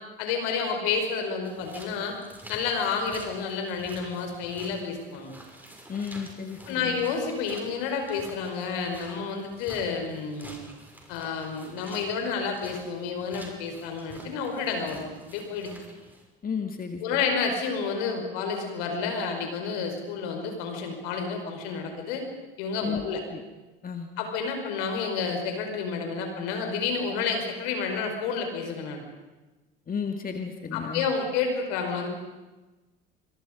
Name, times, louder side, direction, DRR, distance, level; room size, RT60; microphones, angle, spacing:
voice 1, 0.2-2.1 2.5-5.3 6.7-10.6 11.1-15.7 17.0-22.2 22.6-23.2 24.2-29.0 30.7-32.1, left 5 dB, 70° left, 4 dB, 5.4 m, -30 dB
sound 1, 1.4-16.3, right 1 dB, 5° right, 6.3 m, -48 dB
voice 2, 5.9-7.0 16.4-17.2 22.8-23.4 23.8-24.1 29.9-31.1, left 6 dB, 30° left, 5 dB, 2.3 m, -33 dB
26.5 x 22.5 x 5.3 m, 1.2 s
hypercardioid pair, 70°, 29 cm